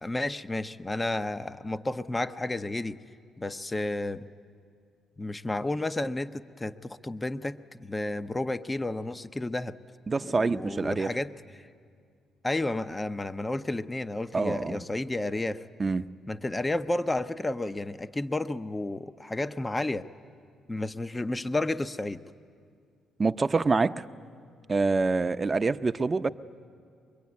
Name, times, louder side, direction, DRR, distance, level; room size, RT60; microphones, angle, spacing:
voice 1, 0.0-3.0 3.4-4.3 5.2-9.8 10.2-11.3 12.4-15.6 16.3-20.1 20.7-22.2, left 2 dB, 15° left, 12 dB, 0.6 m, -31 dB
voice 2, 10.1-11.1 14.3-14.8 15.8-16.1 23.2-24.1 24.7-26.3, right 3 dB, 30° right, 10 dB, 0.6 m, -26 dB
24.0 x 22.5 x 9.5 m, 2.2 s
cardioid pair, 90°, 0 cm